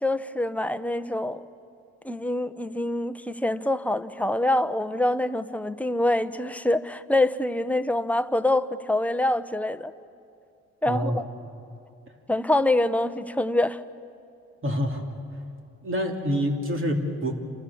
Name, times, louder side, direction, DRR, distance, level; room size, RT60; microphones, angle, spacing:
voice 1, 0.0-1.4 2.0-9.9 10.8-11.2 12.3-13.8, left 1 dB, 5° left, 1.0 m, -25 dB
voice 2, 10.9-11.2 14.6-15.0 15.8-17.3, equal, 40° right, 3.2 m, -26 dB
28.5 x 27.0 x 7.2 m
cardioid pair, 90°, 30 cm